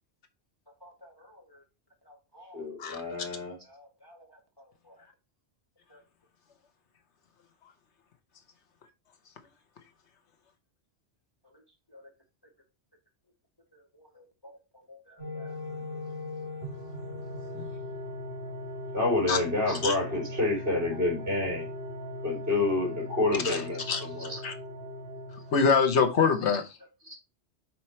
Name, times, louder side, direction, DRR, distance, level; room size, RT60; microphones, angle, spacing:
voice 1, 0.8-1.6 2.1-2.6 3.7-4.3 4.6-5.0 5.9-6.0 11.9-12.0 13.9-14.6 14.9-15.6 19.6-19.7 20.1-20.2, left 1 dB, 20° left, 1.2 m, -53 dB
voice 2, 2.5-3.6 18.9-21.7 22.2-24.4 27.0-27.2, left 2 dB, 50° right, 3.5 m, -28 dB
sound 1, 15.2-26.4, left 1 dB, 25° right, 2.8 m, -39 dB
voice 3, 23.3-24.0 24.4-24.5 25.5-26.8, left 5 dB, 75° left, 1.2 m, -25 dB
5.8 x 4.5 x 4.3 m
omnidirectional pair, 1.2 m